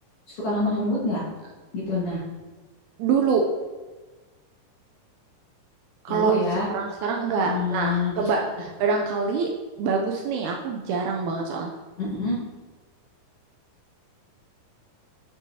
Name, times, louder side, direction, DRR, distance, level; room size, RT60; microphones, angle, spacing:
voice 1, 0.3-1.2 1.7-2.2 6.1-6.7 7.4-8.1 12.0-12.4, left 1 dB, 50° left, -8 dB, 2.1 m, -25 dB
voice 2, 3.0-3.5 6.1-6.3 6.7-9.5 9.8-11.7, right 5 dB, 85° right, 0 dB, 1.7 m, -25 dB
7.5 x 5.3 x 2.7 m, 1.3 s
omnidirectional pair, 4.0 m